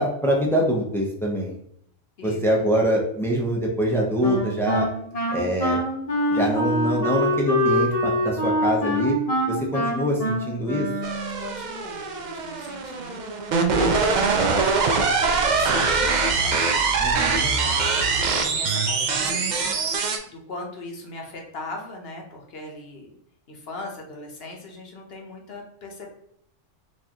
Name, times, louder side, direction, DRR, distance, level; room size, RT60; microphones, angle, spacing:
voice 1, 0.0-1.6 2.2-4.9 5.3-5.8 6.3-9.1 9.5-10.9 17.0-17.5, equal, 5° left, -1 dB, 0.3 m, -24 dB
Wind instrument woodwind instrument, 4.2-11.6, equal, 35° left, 0.7 m, -25 dB
sound 1, 11.0-20.2, right 4 dB, 65° right, 0.4 m, -23 dB
voice 2, 11.4-16.6 16.9-19.7 20.2-23.1 23.5-26.1, left 2 dB, 60° left, 1 dB, 0.9 m, -39 dB
4.5 x 2.5 x 2.8 m, 0.69 s
omnidirectional pair, 1.3 m